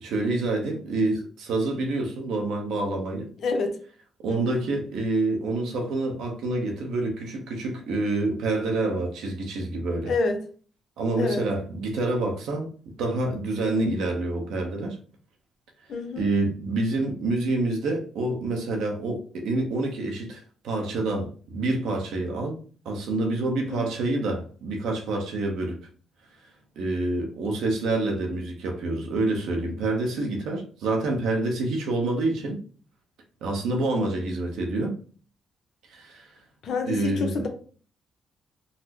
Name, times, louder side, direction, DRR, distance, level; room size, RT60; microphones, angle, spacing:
voice 1, 0.0-3.3 4.2-10.1 11.0-12.7 13.0-15.0 16.2-22.6 22.8-25.8 26.8-32.6 33.4-34.9 35.9-36.3 36.9-37.4, right 2 dB, 80° right, 0.8 m, -27 dB
voice 2, 3.4-3.8 4.3-4.6 10.0-10.4 11.2-11.5 15.9-16.3 23.7-23.9 36.6-37.5, left 3 dB, 65° left, 0.6 m, -28 dB
4.0 x 2.1 x 2.8 m
cardioid pair, 90°, 0 cm